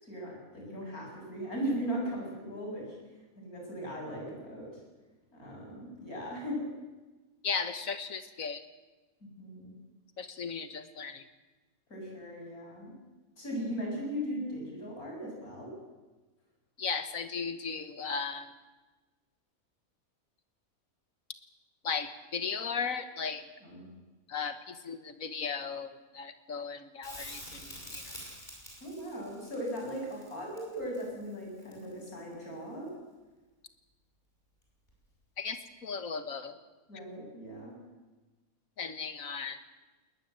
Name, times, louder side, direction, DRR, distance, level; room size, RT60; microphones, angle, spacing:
voice 1, 0.0-2.9 3.4-4.7 5.3-6.7 9.2-9.7 11.9-12.9 13.4-15.7 23.6-23.9 28.8-32.9 36.9-37.7, equal, 90° left, -1 dB, 7.6 m, -38 dB
voice 2, 7.4-8.6 10.2-11.2 16.8-18.5 21.8-23.5 24.3-28.1 35.4-36.6 38.8-39.6, left 5 dB, 65° left, 10 dB, 1.8 m, -36 dB
Crackle, 27.0-32.2 34.9-35.0, equal, 30° left, 6.8 m, -47 dB
20.0 x 20.0 x 7.8 m, 1.2 s
omnidirectional pair, 1.5 m